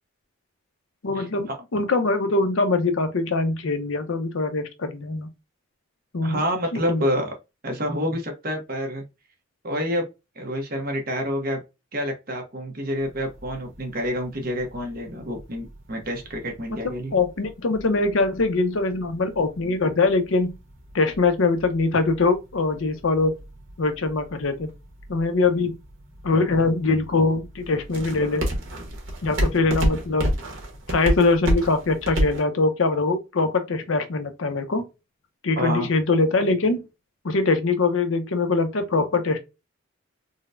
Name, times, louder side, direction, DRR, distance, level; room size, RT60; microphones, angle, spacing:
voice 1, 1.0-5.3 6.1-6.4 6.7-7.0 17.1-20.5 20.9-23.4 23.8-24.7 25.1-25.8 26.2-28.5 29.2-30.3 30.9-34.8 35.4-36.8 37.2-39.4, left 3 dB, 70° left, 0.6 m, -22 dB
voice 2, 6.2-7.3 7.6-9.0 9.6-10.1 10.4-11.6 11.9-17.2 35.6-35.9, equal, 45° right, 0.9 m, -28 dB
sound 1, 13.0-32.4, equal, 65° right, 1.2 m, -33 dB
3.9 x 2.1 x 2.5 m
head